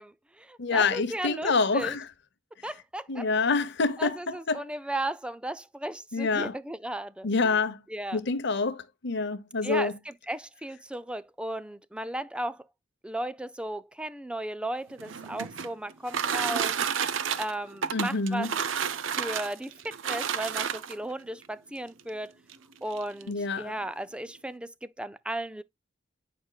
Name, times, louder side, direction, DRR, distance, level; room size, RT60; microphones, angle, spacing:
voice 1, 0.0-2.0 2.6-3.3 4.0-7.6 7.9-8.2 9.6-12.6 13.0-16.8 17.4-18.5 19.1-22.3 22.8-25.6, right 1 dB, 5° right, 0.4 m, -35 dB
voice 2, 0.6-2.0 3.1-4.7 6.1-6.5 7.2-7.8 8.1-9.9 17.9-18.5 23.3-23.8, left 4 dB, 65° left, 0.8 m, -27 dB
sound 1, 14.9-21.1 22.0-22.1 22.5-22.6 22.9-23.3, right 7 dB, 80° right, 0.6 m, -31 dB
8.7 x 5.0 x 2.3 m
head